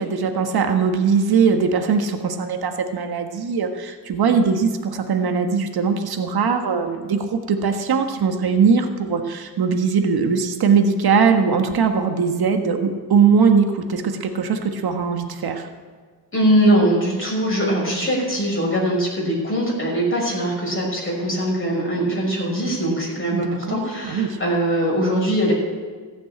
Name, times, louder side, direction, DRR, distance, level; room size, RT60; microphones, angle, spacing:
voice 1, 0.0-15.7 23.3-24.4, right 5 dB, 60° right, 5 dB, 1.6 m, -20 dB
voice 2, 16.3-25.5, right 1 dB, 30° left, -4 dB, 5.7 m, -21 dB
15.0 x 7.5 x 8.5 m, 1.5 s
cardioid pair, 80°, 43 cm